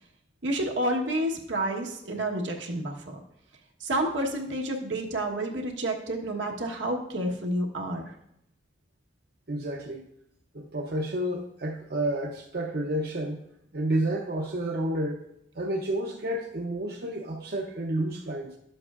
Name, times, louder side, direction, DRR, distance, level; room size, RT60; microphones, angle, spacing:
voice 1, 0.4-3.2 3.8-8.1, right 1 dB, 85° right, 1 dB, 1.2 m, -29 dB
voice 2, 9.5-10.1 10.5-13.4 13.7-15.2 15.5-18.6, right 1 dB, 55° right, 0 dB, 0.7 m, -30 dB
12.0 x 7.7 x 2.4 m, 0.76 s
head